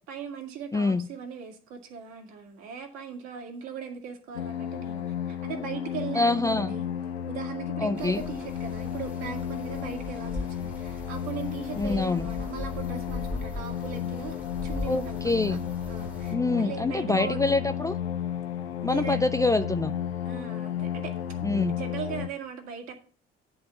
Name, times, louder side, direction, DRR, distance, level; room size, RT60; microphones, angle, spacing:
voice 1, 0.1-6.9 7.3-14.4 14.6-15.2 15.5-17.4 18.8-19.2 20.3-21.3 21.7-22.9, right 7 dB, 60° right, 1.8 m, -39 dB
voice 2, 0.7-1.1 6.1-6.8 7.8-8.2 11.8-12.3 14.9-15.7 16.3-18.0 18.8-19.9 21.4-21.8, left 3 dB, 10° left, 0.4 m, -26 dB
sound 1, 4.3-22.3, left 9 dB, 80° left, 0.5 m, -33 dB
sound 2, 8.0-16.4, left 1 dB, 5° right, 1.1 m, -40 dB
10.0 x 3.8 x 6.9 m
figure-of-eight pair, 50°, 31 cm